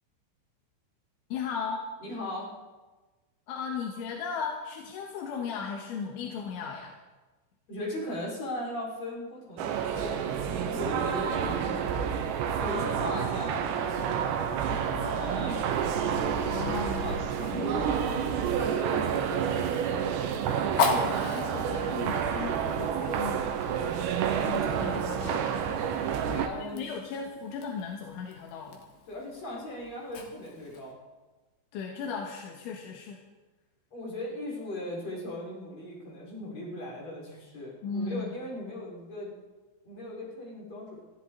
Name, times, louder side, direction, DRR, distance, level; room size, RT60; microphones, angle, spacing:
voice 1, 1.3-1.9 3.5-6.9 11.1-11.9 16.5-17.2 17.5-18.3 20.8-23.5 24.4-25.6 26.5-28.8 31.7-33.2 37.8-38.4, left 6 dB, 85° left, 0 dB, 3.8 m, -37 dB
voice 2, 2.1-2.6 7.7-12.0 12.6-14.5 14.9-18.0 18.5-20.1 26.0-26.9 29.1-31.0 33.9-39.3 39.8-41.0, left 1 dB, 35° left, -5 dB, 6.0 m, -38 dB
sound 1, 9.6-26.5, right 8 dB, 75° right, 3.1 m, -29 dB
Fire, 17.7-30.9, left 4 dB, 60° left, 3.8 m, -38 dB
22.0 x 14.5 x 4.0 m, 1.2 s
omnidirectional pair, 5.4 m